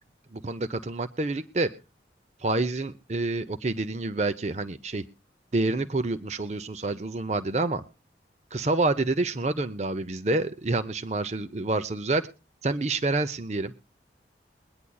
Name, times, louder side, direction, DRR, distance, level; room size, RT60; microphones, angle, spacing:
voice 1, 0.3-1.7 2.4-5.0 5.5-7.8 8.5-12.2 12.6-13.8, right 2 dB, 40° right, 11 dB, 0.7 m, -28 dB
22.5 x 9.8 x 2.3 m, 0.33 s
head